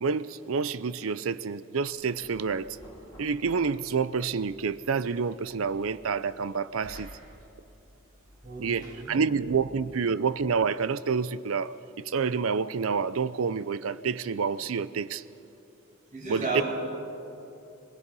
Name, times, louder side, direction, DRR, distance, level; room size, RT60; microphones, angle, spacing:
voice 1, 0.0-2.7 3.2-7.1 8.6-15.2 16.3-16.6, right 5 dB, 90° right, 0.6 m, -28 dB
Knock, 1.9-9.8, equal, 20° left, 4.8 m, -52 dB
voice 2, 8.4-9.3 9.8-9.9 16.1-16.6, right 3 dB, 40° right, 6.1 m, -34 dB
23.5 x 21.0 x 5.5 m
head